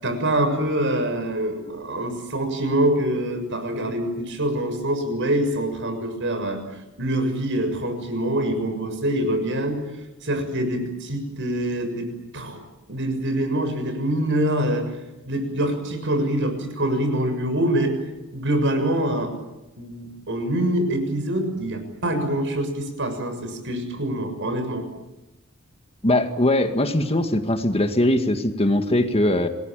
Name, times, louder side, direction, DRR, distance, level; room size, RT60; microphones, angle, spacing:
voice 1, 0.0-6.6 7.0-9.8 10.2-12.6 12.9-14.9 15.3-17.9 18.3-19.3 19.8-24.9, right 1 dB, 60° right, 7 dB, 6.9 m, -25 dB
voice 2, 26.0-29.5, left 1 dB, 30° left, 7 dB, 2.0 m, -21 dB
27.5 x 21.0 x 9.1 m, 0.99 s
head